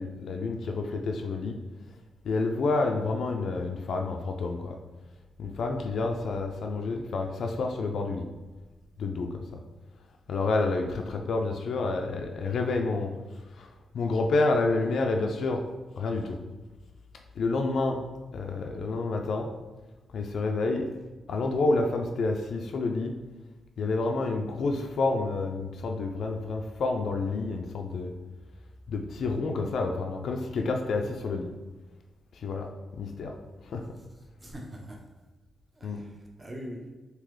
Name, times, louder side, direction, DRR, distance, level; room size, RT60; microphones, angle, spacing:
voice 1, 0.0-1.6 2.2-4.8 5.4-8.3 9.0-9.6 10.3-13.1 13.5-15.6 16.0-16.4 17.4-18.0 18.3-19.5 20.1-20.9 21.3-23.1 23.8-28.1 28.9-31.5 32.3-33.4 33.6-33.9 35.8-36.0, left 3 dB, 65° left, 2 dB, 0.3 m, -29 dB
voice 2, 34.4-35.0 35.8-36.9, equal, 25° right, 0 dB, 0.6 m, -42 dB
3.7 x 2.7 x 3.1 m, 1.2 s
cardioid pair, 120°, 0 cm